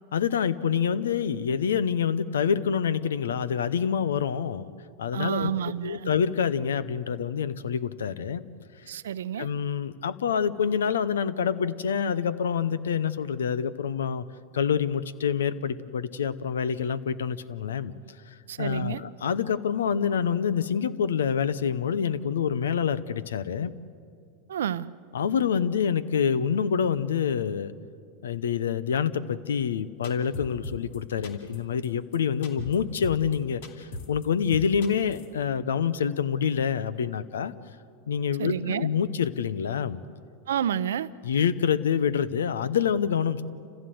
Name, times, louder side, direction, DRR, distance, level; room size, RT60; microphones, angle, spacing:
voice 1, 0.1-4.7 5.0-5.5 5.8-8.5 9.4-14.2 14.5-17.9 18.6-23.7 25.1-27.7 28.2-37.5 38.1-40.0 41.2-43.4, left 7 dB, 90° left, 16 dB, 0.8 m, -27 dB
voice 2, 5.1-6.1 8.9-9.5 18.5-19.0 24.5-24.9 38.4-38.9 40.5-41.1, right 10 dB, 85° right, 17 dB, 0.6 m, -29 dB
sound 1, 30.0-31.0 31.2-31.6 31.8-31.9 32.1-32.2 32.4-32.8 33.0-33.4 33.6-34.3 34.5-35.3, left 2 dB, 75° left, 2.6 m, -37 dB
28.5 x 15.5 x 7.8 m, 2.4 s
hypercardioid pair, 105°, 0 cm